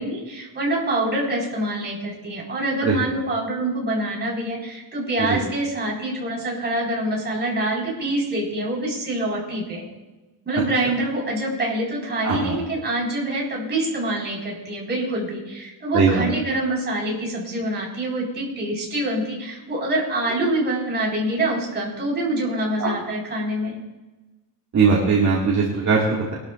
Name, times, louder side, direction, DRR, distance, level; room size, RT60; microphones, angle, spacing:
voice 1, 0.0-9.8 10.4-23.7, right 1 dB, 25° right, -4 dB, 4.9 m, -25 dB
voice 2, 12.2-12.5 15.9-16.2 22.8-23.0 24.7-26.3, right 5 dB, 40° right, -4 dB, 2.2 m, -19 dB
22.5 x 12.5 x 2.6 m, 1.1 s
cardioid pair, 175°, 43 cm